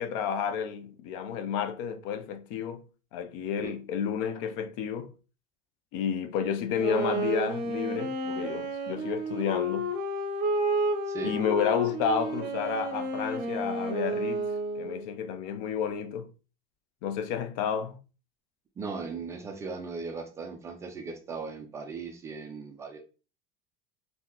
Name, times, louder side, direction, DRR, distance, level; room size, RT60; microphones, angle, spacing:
voice 1, 0.0-2.8 3.1-5.1 5.9-9.9 11.2-14.5 14.8-16.3 17.0-18.0, left 7 dB, 60° left, 0.5 m, -31 dB
Wind instrument woodwind instrument, 6.8-15.1, right 1 dB, 45° right, 0.8 m, -31 dB
voice 2, 11.1-11.4 18.8-23.0, right 4 dB, 15° right, 0.3 m, -38 dB
3.7 x 2.7 x 2.8 m
cardioid pair, 175°, 19 cm